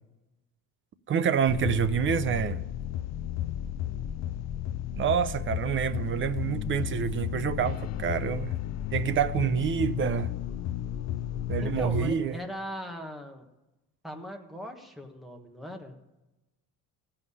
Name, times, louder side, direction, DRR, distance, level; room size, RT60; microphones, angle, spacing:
voice 1, 1.1-2.6 5.0-8.5 8.9-10.3 11.5-12.3, right 7 dB, 35° right, 0.6 m, -27 dB
sound 1, 1.5-12.1, left 11 dB, 50° left, 0.5 m, -33 dB
voice 2, 11.6-13.5 14.0-16.0, equal, ahead, 1.4 m, -40 dB
15.5 x 5.7 x 9.7 m
cardioid pair, 150°, 36 cm